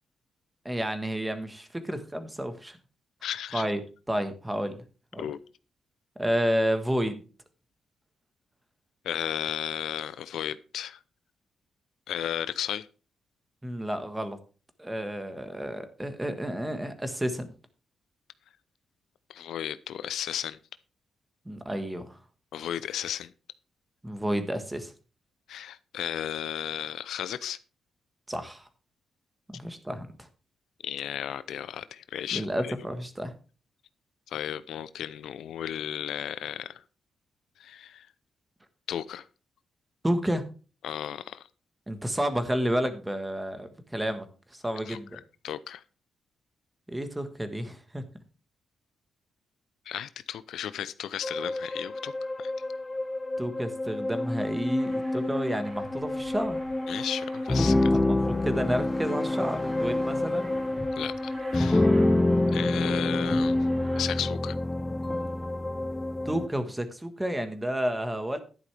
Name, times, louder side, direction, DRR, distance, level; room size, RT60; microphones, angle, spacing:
voice 1, 0.6-2.8 3.5-3.8 4.1-4.8 5.1-5.3 6.2-7.2 13.6-14.4 14.8-17.5 21.4-22.2 24.0-24.9 28.3-28.7 29.5-30.3 32.3-33.3 40.0-40.4 41.9-45.2 46.9-48.0 53.4-56.6 57.9-58.2 58.4-60.5 66.2-68.4, equal, 10° right, 9 dB, 1.5 m, -30 dB
voice 2, 3.2-3.7 5.2-5.4 9.0-11.0 12.1-12.9 19.3-20.6 22.5-23.3 25.5-27.6 30.8-32.7 34.3-36.8 37.6-38.1 38.9-39.3 40.8-41.4 44.9-45.8 49.9-52.5 56.9-57.9 61.0-61.9 62.5-63.6 64.0-64.6, left 10 dB, 85° left, 15 dB, 0.6 m, -34 dB
sound 1, 51.2-66.5, left 2 dB, 15° left, 0.6 m, -27 dB
Aircraft, 54.8-64.1, right 3 dB, 45° right, 3.4 m, -48 dB
11.0 x 9.8 x 3.4 m, 0.36 s
cardioid pair, 125°, 0 cm